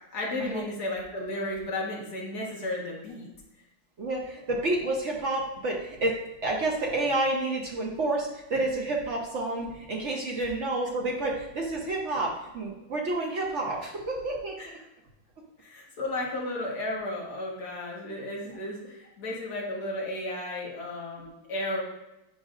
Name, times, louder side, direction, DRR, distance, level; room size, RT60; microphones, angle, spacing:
voice 1, 0.1-3.3 14.6-14.7 15.6-21.8, left 1 dB, 50° left, -3 dB, 1.9 m, -33 dB
voice 2, 4.0-14.6 18.4-18.6, right 2 dB, 75° right, -1 dB, 0.6 m, -29 dB
9.3 x 5.0 x 2.5 m, 0.94 s
omnidirectional pair, 2.4 m